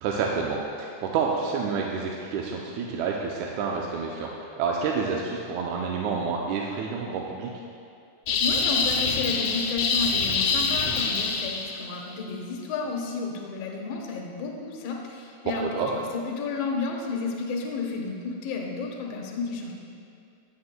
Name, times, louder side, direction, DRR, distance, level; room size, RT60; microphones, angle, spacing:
voice 1, 0.0-7.5 15.8-15.9, right 5 dB, 80° right, -1 dB, 2.0 m, -29 dB
sound 1, 8.3-11.9, left 5 dB, 85° left, 2.2 m, -25 dB
voice 2, 8.4-15.7 15.9-19.7, left 4 dB, 65° left, 0 dB, 1.9 m, -32 dB
17.5 x 7.0 x 2.2 m, 2.4 s
omnidirectional pair, 3.5 m